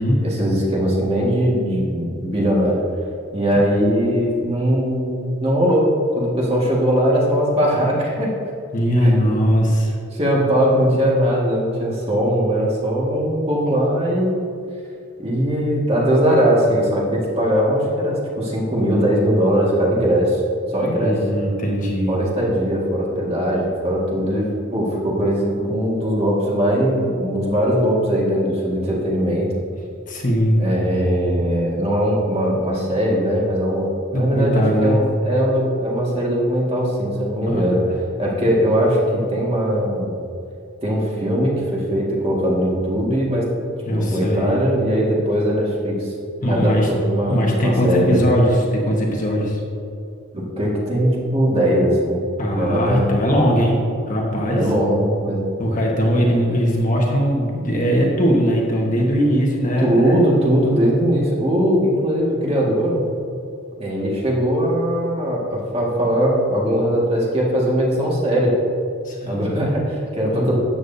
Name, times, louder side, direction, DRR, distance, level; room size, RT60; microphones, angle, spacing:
voice 1, 0.2-2.8 3.3-8.3 9.0-9.3 10.1-14.4 15.2-20.4 20.7-21.2 22.1-29.5 30.6-37.8 38.2-40.2 40.8-43.4 43.9-46.1 46.4-48.2 50.3-52.2 52.5-53.3 54.5-55.4 59.8-63.0 63.8-68.6 69.3-70.5, equal, 30° right, -4 dB, 1.9 m, -20 dB
voice 2, 8.7-9.9 21.0-22.2 30.1-30.6 34.1-35.0 37.5-38.0 43.8-44.6 46.4-46.9 47.3-49.6 52.4-54.7 55.6-60.2 69.0-69.4 70.3-70.5, equal, 35° left, -2 dB, 1.4 m, -20 dB
13.0 x 8.8 x 2.7 m, 2.4 s
head